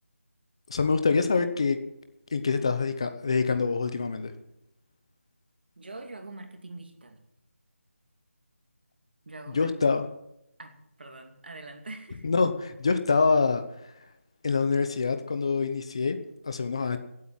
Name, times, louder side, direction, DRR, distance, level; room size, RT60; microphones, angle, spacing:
voice 1, 0.7-1.8 2.3-4.3 9.5-10.0 12.2-13.6 14.4-16.2 16.4-17.0, left 4 dB, 25° left, 9 dB, 0.9 m, -25 dB
voice 2, 5.8-7.2 9.3-9.7 10.6-12.3, right 2 dB, 45° right, 5 dB, 2.7 m, -44 dB
17.0 x 8.6 x 7.7 m, 0.82 s
figure-of-eight pair, 175°, 8 cm